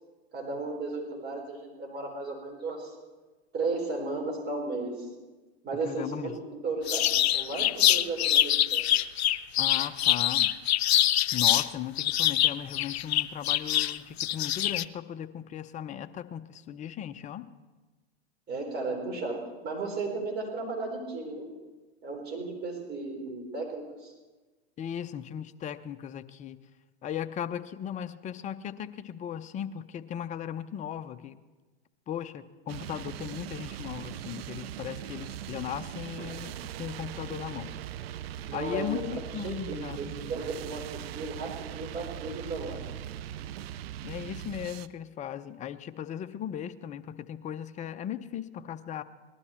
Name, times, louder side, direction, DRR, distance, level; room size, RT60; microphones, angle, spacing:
voice 1, 0.3-2.9 3.5-5.0 5.6-6.3 6.6-7.1 7.3-8.8 18.5-21.5 22.0-24.1 38.4-39.0 39.4-42.8, right 3 dB, 30° right, 1 dB, 4.1 m, -34 dB
voice 2, 5.8-6.4 9.6-10.5 11.3-17.5 24.8-26.6 27.0-31.4 32.1-37.7 38.5-40.2 44.0-49.0, left 9 dB, 25° left, 10 dB, 0.6 m, -37 dB
sound 1, 6.9-11.7 12.0-14.8, left 12 dB, 75° left, 0.5 m, -24 dB
sound 2, 32.7-44.9, right 11 dB, 65° right, 0.6 m, -40 dB
19.0 x 12.5 x 4.4 m, 1.2 s
hypercardioid pair, 100°, 32 cm